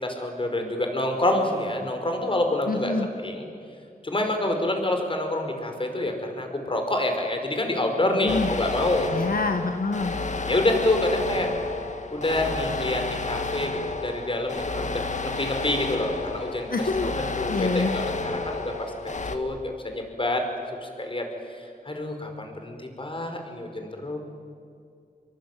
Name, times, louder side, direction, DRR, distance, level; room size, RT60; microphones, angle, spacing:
voice 1, 0.0-3.5 4.0-9.1 10.5-11.5 12.1-16.7 17.0-18.1 18.5-18.7 19.3-20.4 20.7-24.2, left 1 dB, 35° left, 4 dB, 5.2 m, -27 dB
voice 2, 2.7-3.1 8.2-8.5 9.1-10.1 16.7-17.1 17.5-18.0, left 3 dB, 70° left, 6 dB, 1.8 m, -26 dB
sound 1, 8.3-19.4, left 3 dB, 50° left, 2.0 m, -31 dB
26.0 x 22.5 x 9.4 m, 2.4 s
wide cardioid pair, 85°, 16 cm